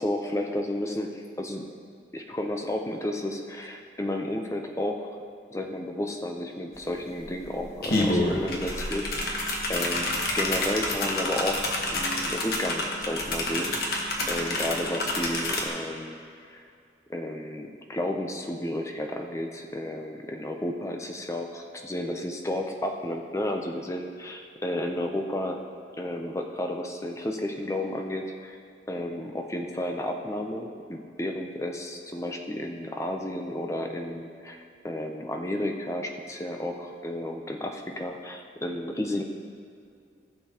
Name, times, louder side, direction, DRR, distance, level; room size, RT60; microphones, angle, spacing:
voice 1, 0.0-1.6 2.1-5.2 5.5-16.2 16.5-16.6 17.1-25.6 26.0-28.6 28.9-39.2, left 1 dB, 15° left, 3 dB, 0.6 m, -32 dB
sound 1, 6.7-6.8 7.1-15.7, left 1 dB, 55° left, 1.2 m, -28 dB
16.0 x 6.7 x 2.9 m, 2.4 s
head